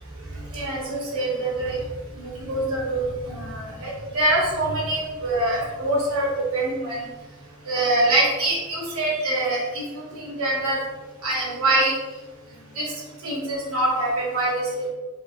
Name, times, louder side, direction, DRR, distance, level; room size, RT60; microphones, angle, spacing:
voice 1, 0.3-1.8 2.2-7.1 7.6-10.8 11.2-11.9 12.7-12.9 13.2-14.9, right 1 dB, 80° right, -4 dB, 1.0 m, -24 dB
3.1 x 2.9 x 2.6 m, 1.2 s
head